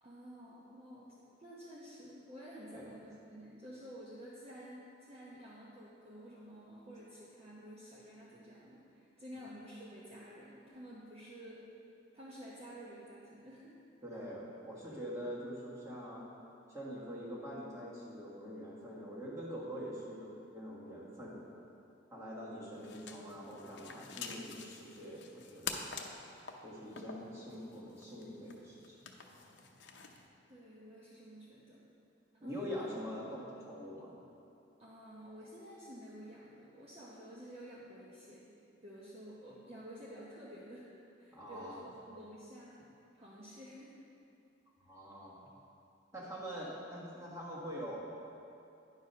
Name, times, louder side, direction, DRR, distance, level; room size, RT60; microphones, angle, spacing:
voice 1, 0.0-11.7 12.1-13.7 30.5-31.8 32.4-32.9 33.2-33.3 34.8-38.5 38.8-40.9 41.2-42.8 43.1-43.9, equal, 30° right, -8 dB, 0.9 m, -51 dB
voice 2, 14.0-16.3 16.7-21.4 22.1-25.8 26.6-29.0 32.4-34.2 41.3-41.8 44.8-45.4 46.1-48.0, equal, 15° right, -6 dB, 1.6 m, -44 dB
sound 1, 22.7-30.3, left 5 dB, 65° left, 0.6 m, -47 dB
10.0 x 4.7 x 5.5 m, 2.7 s
head